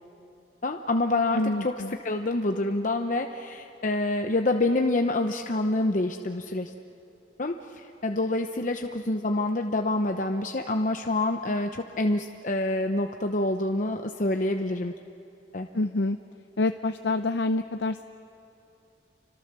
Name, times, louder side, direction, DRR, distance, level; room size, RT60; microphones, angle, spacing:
voice 1, 0.6-6.7 7.4-14.9 15.5-15.7, left 2 dB, 45° left, 4 dB, 0.9 m, -27 dB
voice 2, 1.3-1.9 15.7-16.2 16.6-18.0, left 2 dB, 75° left, 8 dB, 0.7 m, -27 dB
29.5 x 25.5 x 6.8 m, 2.9 s
head